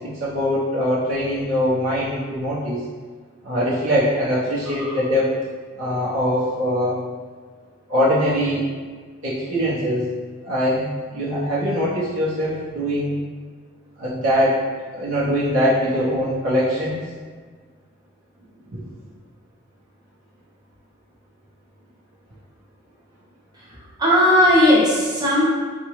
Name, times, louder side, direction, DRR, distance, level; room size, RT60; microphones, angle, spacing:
voice 1, 0.0-2.8 3.4-5.3 5.8-7.0 7.9-8.6 9.2-10.1 10.4-10.9 11.1-13.1 14.0-14.6 14.9-17.0 18.7-18.9, equal, 75° right, -10 dB, 1.1 m, -22 dB
voice 2, 23.5-25.4, left 1 dB, 20° right, -7 dB, 0.9 m, -17 dB
4.6 x 2.5 x 3.1 m, 1.5 s
head